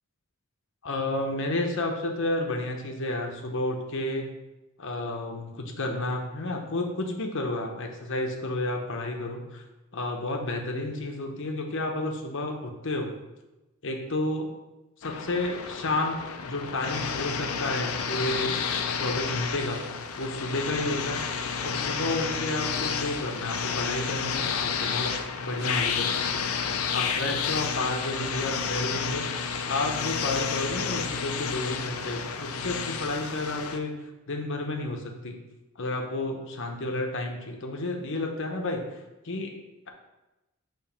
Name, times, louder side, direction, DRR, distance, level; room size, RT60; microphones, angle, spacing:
voice 1, 0.8-4.3 4.8-9.6 9.9-13.2 13.8-14.5 15.0-18.6 19.0-19.8 20.2-21.2 21.6-25.1 25.4-26.5 26.9-33.9 34.3-35.4 35.8-38.8 39.2-39.5, left 2 dB, 55° left, 2 dB, 0.9 m, -31 dB
sound 1, 15.0-33.8, left 6 dB, 75° left, 0.6 m, -31 dB
6.9 x 3.2 x 5.8 m, 1.0 s
head